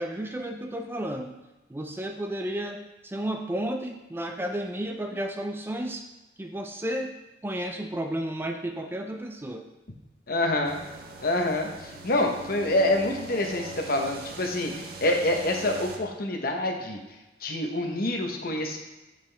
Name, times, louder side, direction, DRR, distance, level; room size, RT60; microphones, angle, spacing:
voice 1, 0.0-1.3 1.7-6.0 6.4-7.2 7.4-9.7, right 1 dB, 15° right, 4 dB, 0.4 m, -32 dB
voice 2, 10.3-10.8 11.2-17.0 17.4-18.8, left 1 dB, 55° left, 3 dB, 0.9 m, -26 dB
sound 1, 10.6-16.0, right 3 dB, 60° right, 0.7 m, -41 dB
7.3 x 5.1 x 3.4 m, 1.1 s
head